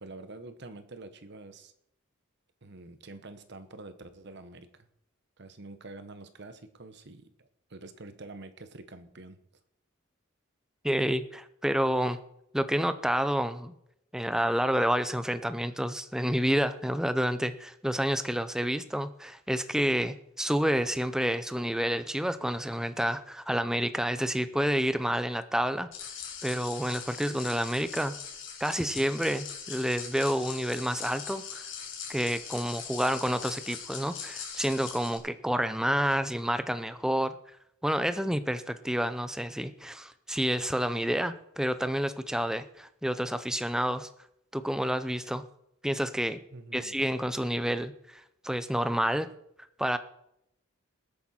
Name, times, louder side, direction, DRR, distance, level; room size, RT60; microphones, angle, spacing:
voice 1, 0.0-1.7 2.6-4.9 5.4-9.4 46.5-46.9, right 2 dB, 55° right, 10 dB, 1.1 m, -47 dB
voice 2, 10.8-12.2 12.5-13.7 14.1-25.9 26.4-28.1 28.6-31.6 32.1-37.4 37.8-44.1 44.5-45.4 45.8-46.4 46.7-49.3 49.8-50.0, equal, 5° right, 11 dB, 0.5 m, -29 dB
sound 1, 25.9-35.2, left 7 dB, 65° left, 3.0 m, -41 dB
20.0 x 8.6 x 4.3 m, 0.79 s
head